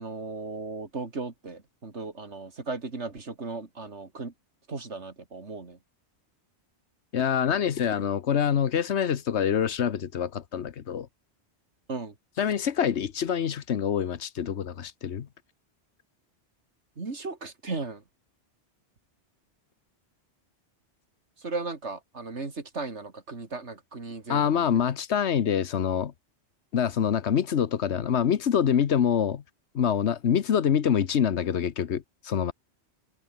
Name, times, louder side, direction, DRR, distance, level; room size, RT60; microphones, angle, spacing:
voice 1, 0.0-4.3 4.7-5.8 11.9-12.1 17.0-18.0 21.4-24.7, right 3 dB, 85° right, 3.1 m, -36 dB
voice 2, 7.1-11.1 12.4-15.3 24.3-26.1 26.7-29.4 29.7-32.5, left 8 dB, 80° left, 1.3 m, -25 dB
omnidirectional pair, 1.1 m